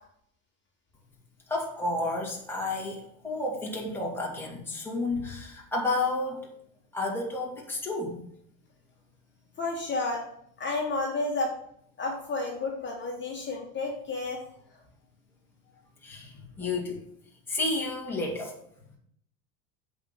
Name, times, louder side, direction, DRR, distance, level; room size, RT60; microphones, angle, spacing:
voice 1, 1.5-6.5 6.9-8.2 16.0-17.0 17.5-18.6, left 2 dB, 5° left, -3 dB, 2.5 m, -31 dB
voice 2, 9.6-10.3 10.6-11.5 12.0-14.4, left 3 dB, 25° left, -2 dB, 2.3 m, -31 dB
7.9 x 5.1 x 6.8 m, 0.68 s
supercardioid pair, 130°, 47 cm